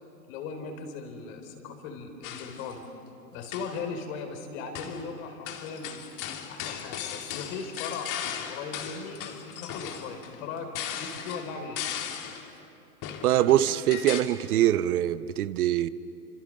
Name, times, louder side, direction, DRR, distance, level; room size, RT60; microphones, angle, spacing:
voice 1, 0.3-2.8 3.3-6.0 6.4-8.1 8.5-11.8, left 5 dB, 55° left, 4.3 m, -38 dB
sound 1, 2.2-2.7 3.4-3.9 4.8-5.1 5.5-12.5 13.0-14.2, left 9 dB, 40° left, 2.5 m, -37 dB
voice 2, 13.2-15.9, right 12 dB, 65° right, 0.9 m, -23 dB
29.5 x 26.5 x 6.6 m
hypercardioid pair, 105°, 49 cm